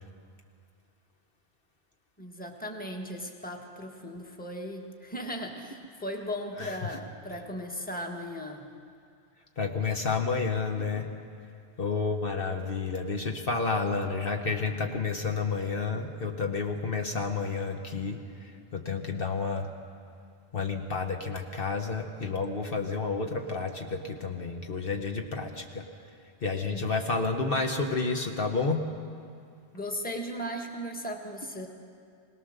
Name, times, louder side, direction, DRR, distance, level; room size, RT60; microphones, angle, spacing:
voice 1, 2.2-8.7 26.7-26.8 29.7-31.7, equal, 10° left, 2 dB, 1.5 m, -37 dB
voice 2, 6.6-7.0 9.6-11.1 11.8-19.7 20.5-25.9 26.4-28.9, left 4 dB, 60° left, 3 dB, 1.3 m, -30 dB
21.5 x 18.5 x 6.6 m, 2.4 s
omnidirectional pair, 1.1 m